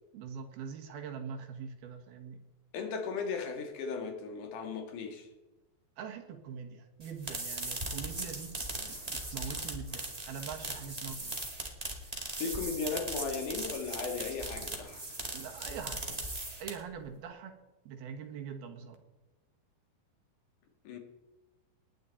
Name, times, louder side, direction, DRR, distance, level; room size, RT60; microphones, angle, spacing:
voice 1, 0.1-2.4 6.0-11.4 15.3-16.0 16.6-17.6 17.9-19.0, right 6 dB, 75° right, 3.5 m, -43 dB
voice 2, 2.7-5.3 12.4-15.0 20.8-21.0, left 5 dB, 60° left, 3.1 m, -36 dB
sound 1, 7.0-17.0, right 2 dB, 15° right, 1.3 m, -39 dB
19.5 x 10.0 x 4.2 m
omnidirectional pair, 4.4 m